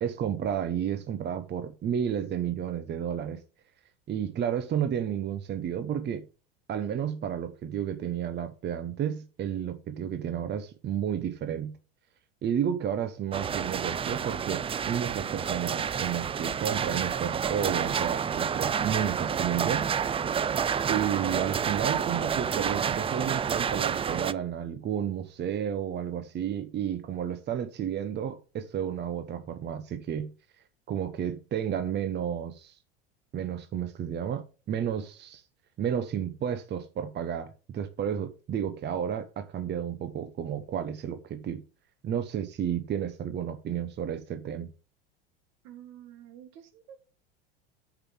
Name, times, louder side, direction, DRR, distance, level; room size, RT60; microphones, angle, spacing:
voice 1, 0.0-3.4 4.1-6.3 6.7-11.8 12.4-19.9 20.9-30.3 30.9-32.8 33.3-35.4 35.8-41.6 42.0-44.7, right 9 dB, 35° right, 1.1 m, -32 dB
sound 1, 13.3-24.3, right 7 dB, 20° right, 0.4 m, -29 dB
voice 2, 45.6-47.0, right 10 dB, 70° right, 2.0 m, -49 dB
6.8 x 6.1 x 7.4 m
hypercardioid pair, 90°, 30 cm